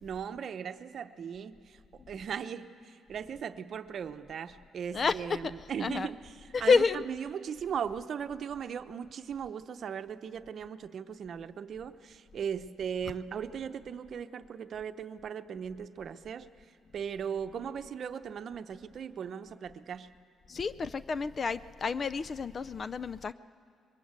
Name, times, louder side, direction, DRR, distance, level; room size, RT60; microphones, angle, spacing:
voice 1, 0.0-16.5 16.9-20.1, right 7 dB, 60° right, 9 dB, 0.8 m, -38 dB
voice 2, 6.5-7.0 20.5-23.3, left 5 dB, 40° left, 15 dB, 0.5 m, -29 dB
21.5 x 21.0 x 8.2 m, 2.4 s
cardioid pair, 90°, 0 cm